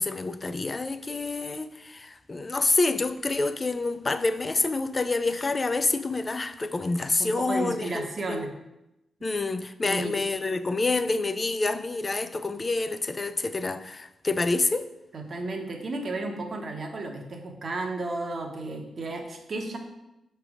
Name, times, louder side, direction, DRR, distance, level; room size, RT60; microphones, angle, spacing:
voice 1, 0.0-8.5 9.2-14.9, left 3 dB, 30° left, 0.4 m, -27 dB
voice 2, 7.2-8.5 9.8-10.1 15.1-19.8, right 2 dB, 50° right, 1.0 m, -33 dB
6.1 x 3.3 x 4.8 m
cardioid pair, 90°, 0 cm